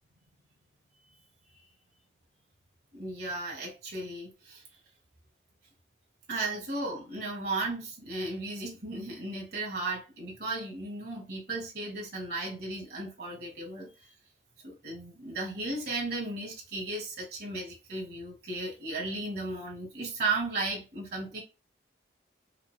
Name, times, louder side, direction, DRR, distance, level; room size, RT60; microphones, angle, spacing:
voice 1, 2.9-4.6 6.3-14.1 14.6-21.4, right 2 dB, 55° right, 2.1 m, -35 dB
5.7 x 2.4 x 2.2 m
head